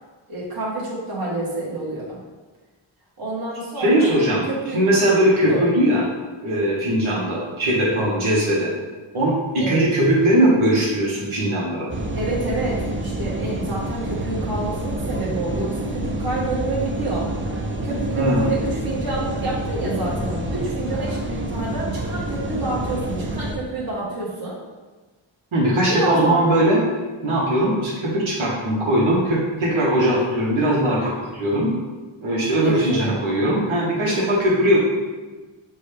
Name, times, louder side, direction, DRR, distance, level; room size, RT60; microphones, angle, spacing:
voice 1, 0.3-2.2 3.2-4.1 4.5-4.8 5.5-5.6 9.6-9.8 12.1-17.3 17.8-24.6 25.9-26.4 32.6-33.1, right 2 dB, 45° right, -6 dB, 1.3 m, -28 dB
voice 2, 3.7-4.4 4.7-6.1 6.4-8.7 9.1-11.9 18.1-18.4 25.5-26.8 27.2-31.7 32.2-34.8, right 1 dB, 80° right, -6 dB, 1.1 m, -20 dB
sound 1, 11.9-23.5, right 1 dB, 25° right, 0.5 m, -28 dB
6.2 x 2.2 x 3.3 m, 1.3 s
wide cardioid pair, 105°, 49 cm